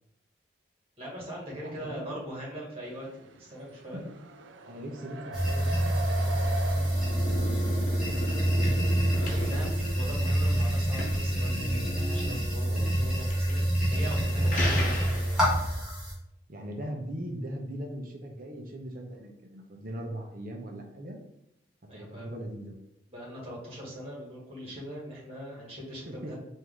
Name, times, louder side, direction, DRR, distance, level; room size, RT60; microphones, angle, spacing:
voice 1, 1.0-4.0 9.2-15.4 21.9-22.3 23.1-26.3, equal, 35° right, -4 dB, 1.6 m, -41 dB
voice 2, 1.6-2.3 3.9-4.2 4.6-7.9 12.6-13.0 16.5-21.2 21.9-22.7 26.0-26.3, right 1 dB, 50° right, 1 dB, 0.7 m, -40 dB
sound 1, 2.8-10.8, right 1 dB, 85° right, 0.4 m, -42 dB
sound 2, 5.3-16.1, right 1 dB, 5° right, 1.6 m, -27 dB
sound 3, 6.7-15.7, left 1 dB, 45° left, 0.8 m, -37 dB
4.7 x 2.7 x 3.6 m, 0.83 s
head